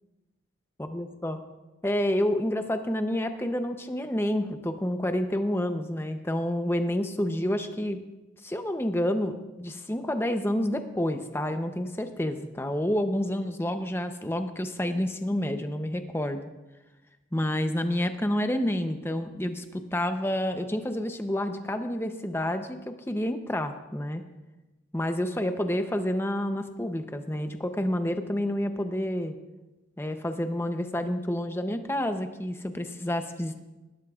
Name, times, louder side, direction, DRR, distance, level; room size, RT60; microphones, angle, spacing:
voice 1, 0.8-1.4 1.8-8.0 8.4-16.4 17.3-24.2 24.9-29.3 30.0-33.6, left 1 dB, 10° left, 7 dB, 0.6 m, -29 dB
19.0 x 12.5 x 2.4 m, 1.1 s
head